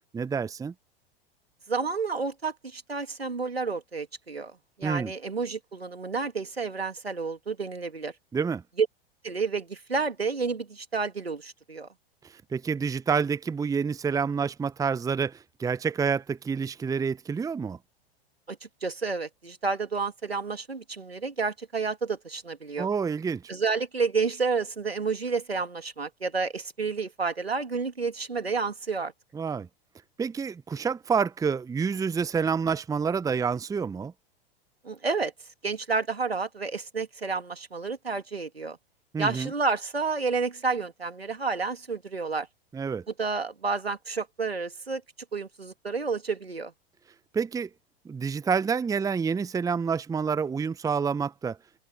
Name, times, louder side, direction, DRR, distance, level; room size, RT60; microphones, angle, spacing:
voice 1, 0.1-0.7 4.8-5.1 8.3-8.6 12.2-17.8 22.8-23.5 29.3-29.7 30.2-34.1 39.1-39.5 42.7-43.0 47.3-47.7 48.0-51.6, right 6 dB, 10° right, 0.9 m, -28 dB
voice 2, 1.7-8.1 8.8-8.9 9.2-11.9 18.5-22.9 23.5-29.1 34.8-35.3 35.6-38.8 39.2-42.5 43.2-45.0 45.3-46.7, right 4 dB, 85° right, 3.1 m, -30 dB
open air
figure-of-eight pair, 90°, 30 cm